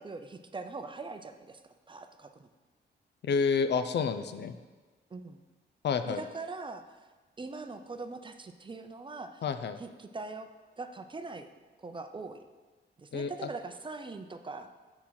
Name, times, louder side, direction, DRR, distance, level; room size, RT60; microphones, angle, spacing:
voice 1, 0.0-1.6 1.9-2.5 5.1-5.4 6.0-7.0 7.4-9.4 9.8-10.5 10.8-11.5 11.8-12.4 13.0-14.7, right 3 dB, 25° right, 7 dB, 0.5 m, -42 dB
voice 2, 3.2-4.6 5.8-6.2 9.4-9.8 13.1-13.5, left 5 dB, 65° left, 9 dB, 0.5 m, -29 dB
6.4 x 5.9 x 5.7 m, 1.3 s
cardioid pair, 100°, 19 cm